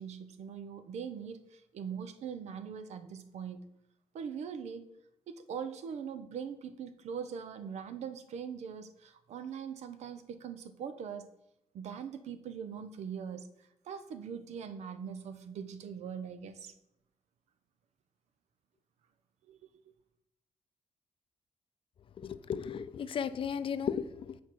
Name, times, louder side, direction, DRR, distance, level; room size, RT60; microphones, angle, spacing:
voice 1, 0.0-3.6 4.1-4.8 5.3-11.3 11.7-16.7 19.5-19.6, right 7 dB, 80° right, 0.7 m, -42 dB
voice 2, 22.2-24.4, left 7 dB, 50° left, 0.4 m, -35 dB
8.1 x 4.6 x 4.6 m
cardioid pair, 110°, 11 cm